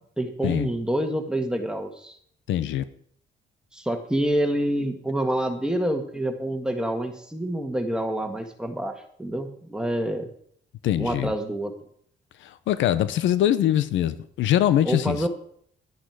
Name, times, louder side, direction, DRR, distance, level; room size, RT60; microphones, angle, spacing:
voice 1, 0.2-2.2 3.7-10.3 11.0-11.7 14.9-15.3, right 1 dB, 5° right, 1.7 m, -27 dB
voice 2, 2.5-2.8 10.8-11.3 12.4-15.3, left 11 dB, 85° left, 0.7 m, -23 dB
11.0 x 10.0 x 4.8 m
cardioid pair, 100°, 19 cm